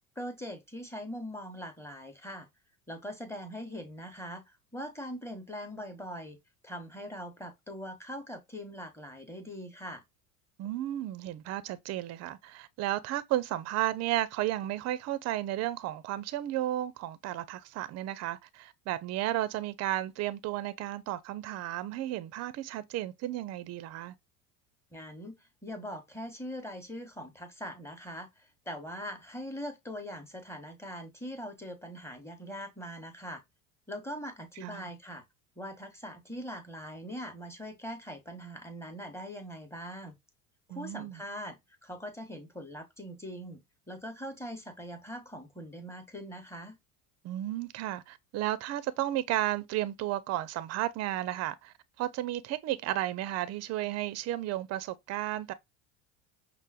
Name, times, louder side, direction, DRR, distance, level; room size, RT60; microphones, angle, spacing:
voice 1, 0.2-2.5 2.9-6.4 6.6-10.0 24.9-33.4 33.9-35.2 35.6-40.2 40.7-46.8, equal, 5° left, 0.9 m, -42 dB
voice 2, 10.6-24.1 34.6-34.9 40.7-41.2 47.2-55.5, right 14 dB, 35° right, 0.4 m, -33 dB
5.4 x 2.1 x 2.3 m
hypercardioid pair, 85°, 46 cm